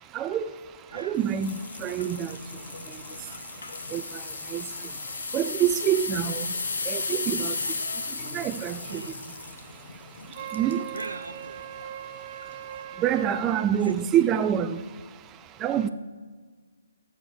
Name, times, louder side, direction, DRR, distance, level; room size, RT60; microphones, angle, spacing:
voice 1, 0.9-1.5 1.8-2.3 3.9-4.0 4.5-4.6 5.3-6.4 6.9-7.5 8.3-9.0 10.5-10.8 13.0-14.8 15.6-15.9, right 10 dB, 20° right, 0.3 m, -25 dB
sound 1, 1.2-11.1 11.6-11.9 12.4-12.5, left 4 dB, 65° left, 1.1 m, -35 dB
voice 2, 7.6-8.1 8.8-9.2 10.9-11.6 13.8-14.0, right 3 dB, 80° right, 0.9 m, -41 dB
Wind instrument woodwind instrument, 10.3-13.7, right 10 dB, 40° right, 0.7 m, -39 dB
13.5 x 4.9 x 6.6 m
figure-of-eight pair, 140°, 0 cm